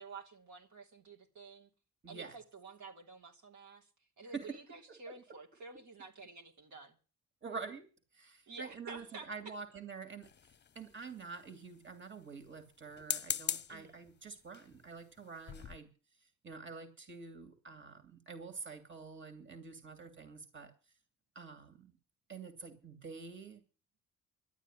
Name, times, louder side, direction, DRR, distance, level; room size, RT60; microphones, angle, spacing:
voice 1, 0.0-1.7 2.1-3.9 4.2-6.9 8.5-9.3 13.7-14.0, right 4 dB, 70° right, 3.3 m, -50 dB
voice 2, 2.0-2.4 4.3-5.1 7.4-7.9 8.1-10.3 10.7-15.9 16.2-20.7 21.3-22.0 22.3-23.6, right 4 dB, 40° right, 2.7 m, -47 dB
sound 1, 10.2-11.0 12.9-13.8 14.5-14.8 15.2-15.3 15.5-15.8, left 8 dB, 35° left, 0.8 m, -39 dB
12.5 x 9.2 x 10.0 m
cardioid pair, 90°, 30 cm